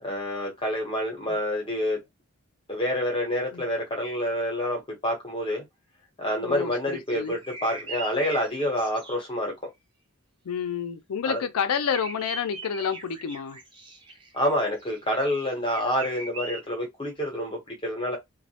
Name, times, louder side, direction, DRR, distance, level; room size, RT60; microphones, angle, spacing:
voice 1, 0.0-2.0 2.7-5.6 6.2-9.5 11.2-11.4 14.3-18.2, equal, 25° left, 0.8 m, -28 dB
voice 2, 6.4-7.4 10.5-13.6, left 7 dB, 90° left, 0.4 m, -29 dB
sound 1, 7.1-9.2 11.7-16.6, right 2 dB, 20° right, 0.5 m, -40 dB
2.2 x 2.0 x 2.7 m
head